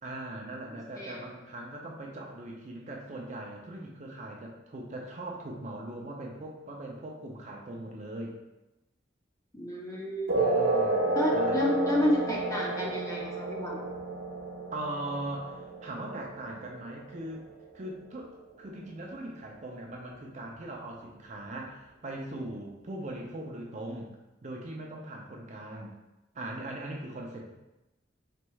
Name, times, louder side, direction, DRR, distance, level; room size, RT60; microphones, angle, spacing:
voice 1, 0.0-8.4 10.3-11.1 11.3-11.6 14.7-17.5 17.7-24.1 24.4-26.0 26.3-27.6, right 1 dB, 35° right, 0 dB, 0.4 m, -40 dB
voice 2, 0.9-1.3 9.5-10.5 11.1-13.8, left 1 dB, 15° left, -2 dB, 0.5 m, -30 dB
sound 1, 10.3-17.3, right 2 dB, 85° right, 0.8 m, -30 dB
4.2 x 3.2 x 2.3 m, 0.99 s
head